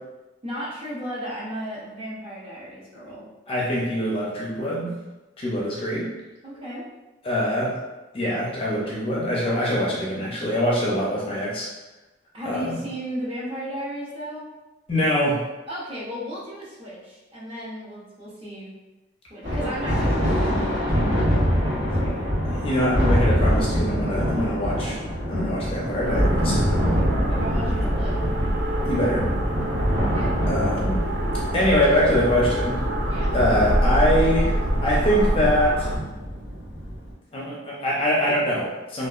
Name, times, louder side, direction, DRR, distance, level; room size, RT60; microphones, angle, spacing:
voice 1, 0.4-3.2 6.4-6.9 12.3-14.5 15.7-18.7 19.3-22.4 26.8-28.2 30.0-30.4 33.1-33.3, equal, 30° right, -7 dB, 0.7 m, -35 dB
voice 2, 3.5-5.0 5.4-6.1 7.2-7.8 8.1-11.7 12.4-12.8 14.9-15.4 22.5-25.0 25.3-26.7 28.9-29.3 30.5-31.0 31.5-32.8 33.3-35.9 37.3-39.1, equal, 30° left, -5 dB, 0.5 m, -23 dB
Thunder, 19.4-37.1, equal, 90° right, 1.1 m, -25 dB
sound 1, 26.0-36.0, right 1 dB, 60° right, 0.3 m, -26 dB
2.8 x 2.3 x 2.4 m, 1.1 s
head